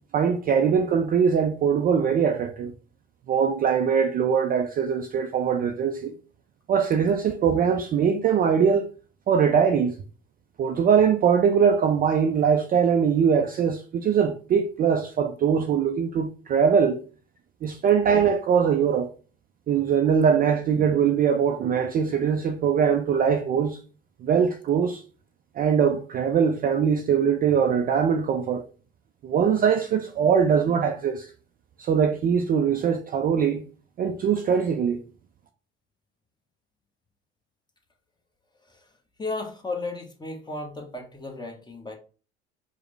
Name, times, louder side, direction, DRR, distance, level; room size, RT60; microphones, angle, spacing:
voice 1, 0.1-2.7 3.3-6.1 6.7-8.9 9.3-9.9 10.6-17.0 17.6-19.1 19.7-23.8 24.2-25.0 25.6-28.6 29.2-31.3 31.8-33.6 34.0-35.0, right 7 dB, 30° right, 0.4 m, -22 dB
voice 2, 39.2-42.0, left 2 dB, 15° left, 1.0 m, -34 dB
4.8 x 2.1 x 3.2 m
hypercardioid pair, 75°, 33 cm